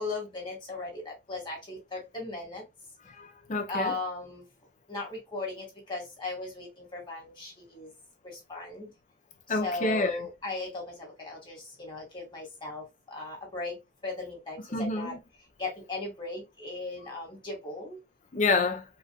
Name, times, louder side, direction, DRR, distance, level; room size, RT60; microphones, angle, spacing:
voice 1, 0.0-2.6 3.7-4.4 4.9-7.9 8.2-8.9 9.5-13.8 14.0-15.2 15.6-18.0, left 3 dB, 25° left, 2.0 m, -37 dB
voice 2, 3.2-4.0 9.5-10.2 14.7-15.2 18.3-18.8, left 3 dB, 40° left, 0.8 m, -28 dB
4.7 x 2.6 x 2.4 m
head